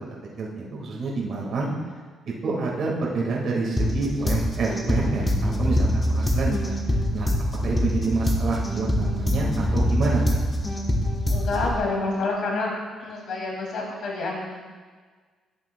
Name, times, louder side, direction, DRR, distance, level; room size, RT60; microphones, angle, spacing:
voice 1, 0.4-1.7 2.3-6.7 7.1-10.2, right 3 dB, 65° right, -3 dB, 1.8 m, -28 dB
sound 1, 3.8-11.8, equal, 20° left, 1.1 m, -24 dB
voice 2, 11.3-12.7 13.0-14.6, left 3 dB, 70° left, -2 dB, 2.3 m, -28 dB
12.0 x 8.0 x 2.3 m, 1.5 s
cardioid pair, 90°, 0 cm